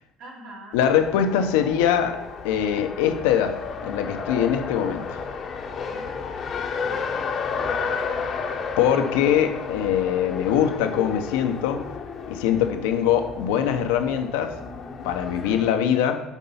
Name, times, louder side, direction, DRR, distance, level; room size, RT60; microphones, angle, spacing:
voice 1, 0.2-0.8 5.9-8.3 12.5-13.0 15.4-15.6, equal, 60° right, -3 dB, 3.0 m, -46 dB
voice 2, 0.7-2.2 2.4-5.2 8.8-11.8 12.3-14.5 15.0-16.2, left 9 dB, 80° left, 6 dB, 0.8 m, -22 dB
Race car auto racing, 0.7-15.7, left 5 dB, 45° left, 0.9 m, -32 dB
8.2 x 4.6 x 5.6 m, 0.95 s
supercardioid pair, 90°, 0 cm